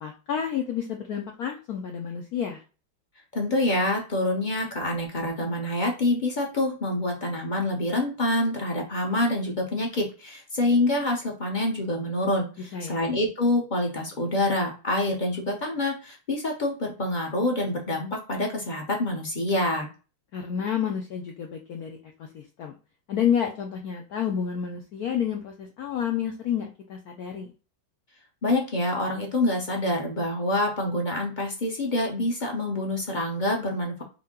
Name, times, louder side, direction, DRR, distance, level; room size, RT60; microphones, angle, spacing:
voice 1, 0.0-2.6 12.7-13.0 20.3-22.7 23.1-27.5, left 8 dB, 75° left, 2 dB, 0.8 m, -30 dB
voice 2, 3.3-19.9 28.4-34.0, left 1 dB, 50° left, 0 dB, 0.5 m, -26 dB
5.5 x 2.2 x 3.6 m, 0.33 s
omnidirectional pair, 2.3 m